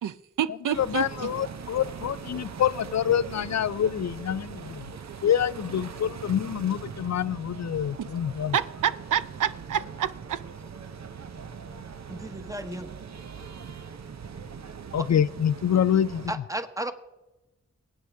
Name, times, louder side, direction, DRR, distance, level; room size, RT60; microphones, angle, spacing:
voice 1, 0.0-1.3 8.0-8.1 8.5-10.4, right 9 dB, 85° right, 0.5 m, -28 dB
sound 1, 0.7-16.3, right 6 dB, 60° right, 0.8 m, -41 dB
voice 2, 0.8-4.9 5.2-8.6 14.9-16.4, left 9 dB, 60° left, 0.4 m, -26 dB
voice 3, 12.1-12.9 15.0-15.1 16.3-16.9, right 1 dB, 10° right, 1.1 m, -33 dB
23.5 x 8.8 x 3.5 m
wide cardioid pair, 70°, 31 cm